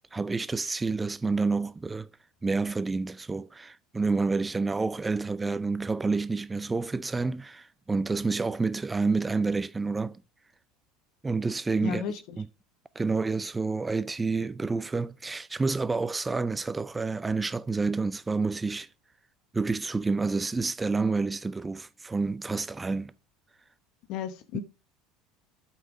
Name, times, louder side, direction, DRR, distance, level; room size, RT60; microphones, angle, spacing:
voice 1, 0.1-2.1 2.4-10.2 11.2-12.5 13.0-18.9 19.5-23.1, right 4 dB, 15° right, 0.4 m, -29 dB
voice 2, 11.8-12.4 24.1-24.6, left 8 dB, 65° left, 1.0 m, -34 dB
8.1 x 5.5 x 4.9 m
supercardioid pair, 95°, 0 cm